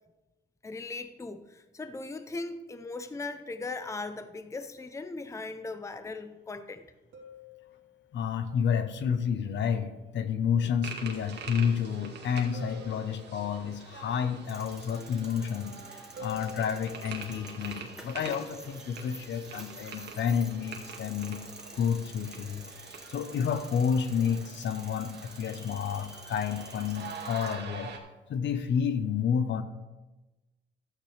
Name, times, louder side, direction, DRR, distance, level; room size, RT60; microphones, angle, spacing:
voice 1, 0.6-6.9, left 3 dB, 15° left, 10 dB, 0.6 m, -38 dB
sound 1, 7.1-8.2 12.5-13.8 16.2-17.4 20.7-20.9, left 5 dB, 80° right, 2.5 m, -47 dB
voice 2, 8.1-21.4 21.7-22.7 23.1-27.9 28.3-29.6, left 7 dB, 65° left, 10 dB, 1.0 m, -30 dB
sound 2, 10.8-28.0, right 5 dB, 60° right, 1.9 m, -45 dB
sound 3, 14.4-27.5, right 1 dB, 5° right, 1.8 m, -49 dB
13.5 x 9.0 x 3.4 m, 1.1 s
cardioid pair, 90°, 20 cm